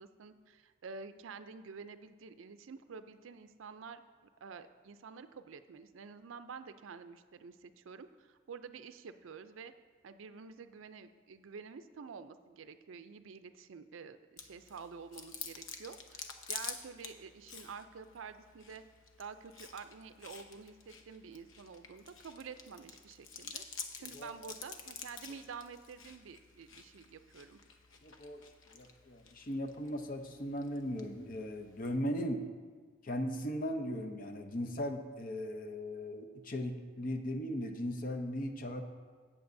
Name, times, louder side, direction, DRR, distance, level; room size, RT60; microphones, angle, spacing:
voice 1, 0.0-9.7 10.0-18.8 19.2-23.6 24.0-27.6, right 5 dB, 75° right, 11 dB, 0.4 m, -49 dB
Chewing mastication, 14.4-32.0, left 6 dB, 75° left, 0.8 m, -50 dB
voice 2, 28.0-28.4 28.7-32.4 33.0-38.8, equal, 45° left, 5 dB, 0.7 m, -38 dB
17.5 x 7.4 x 2.6 m, 1.5 s
head